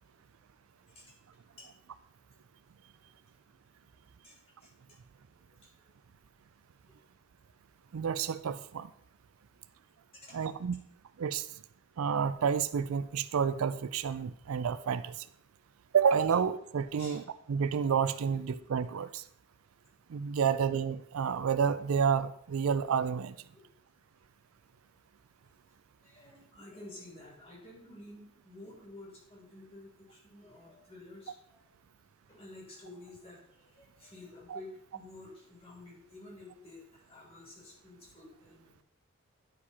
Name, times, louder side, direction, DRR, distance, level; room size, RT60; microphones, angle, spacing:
voice 1, 1.5-2.0 3.0-3.1 3.9-5.0 5.5-5.9 6.8-6.9 9.4-9.8 10.1-10.5 17.0-17.2 20.4-20.5 23.5-23.6 25.4-25.5 26.0-31.7 32.3-38.8, left 2 dB, 25° left, -3 dB, 2.9 m, -52 dB
voice 2, 7.9-8.9 10.3-10.8 11.2-11.5 12.0-15.3 15.9-17.2 17.5-19.2 20.1-23.4 34.5-34.6, right 7 dB, 80° right, 14 dB, 0.4 m, -29 dB
10.5 x 4.8 x 4.2 m, 0.68 s
head